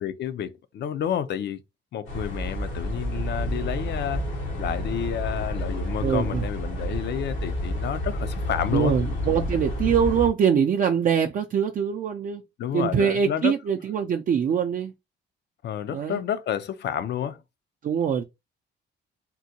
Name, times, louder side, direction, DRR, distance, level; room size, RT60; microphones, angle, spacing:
voice 1, 0.0-1.6 1.9-4.2 4.6-8.9 12.6-13.5 15.6-17.4, left 9 dB, 60° left, 0.5 m, -30 dB
sound 1, 2.1-10.3, equal, 90° left, 1.2 m, -30 dB
voice 2, 6.0-6.5 8.7-12.4 12.7-14.9 15.9-16.2 17.8-18.2, right 7 dB, 45° right, 0.4 m, -23 dB
3.7 x 2.1 x 2.7 m
cardioid pair, 90°, 20 cm